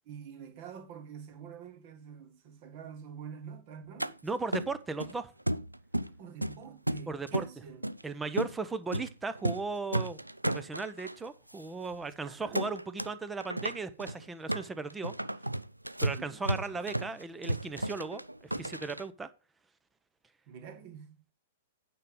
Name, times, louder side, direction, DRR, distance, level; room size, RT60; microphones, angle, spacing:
voice 1, 0.1-4.2 6.1-7.9 12.3-12.6 16.0-17.1 20.5-21.3, right 7 dB, 40° right, 1.8 m, -47 dB
sound 1, 4.0-4.1 4.5-5.1 5.5-6.2 6.4-7.5 7.8-8.0 8.4-8.6 8.9-9.1 9.4-9.7 9.9-11.2 11.6-11.7 11.9-12.1 12.5-13.1 13.4-19.0, right 1 dB, 90° right, 0.4 m, -33 dB
voice 2, 4.2-5.3 7.1-7.4 8.0-10.2 10.4-15.1 16.0-19.3, right 4 dB, 10° right, 0.8 m, -37 dB
9.2 x 5.4 x 5.1 m
figure-of-eight pair, 105°, 0 cm